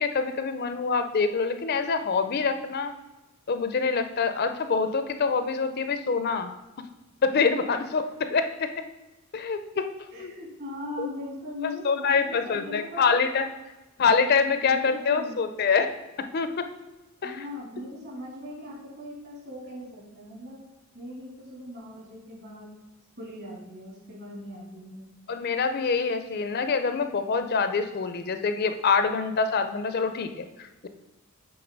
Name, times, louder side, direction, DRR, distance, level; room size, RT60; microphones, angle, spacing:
voice 1, 0.0-2.9 3.5-6.5 7.2-8.7 9.3-9.9 10.2-10.3 11.0-11.1 11.6-13.5 14.0-15.9 16.2-16.7 17.2-17.4 25.3-30.9, left 5 dB, 45° left, 9 dB, 0.4 m, -25 dB
voice 2, 10.1-13.1 14.7-15.5 17.2-20.6 20.9-22.7 23.2-25.1, left 1 dB, 55° right, -3 dB, 2.5 m, -39 dB
7.8 x 3.7 x 5.2 m, 1.1 s
head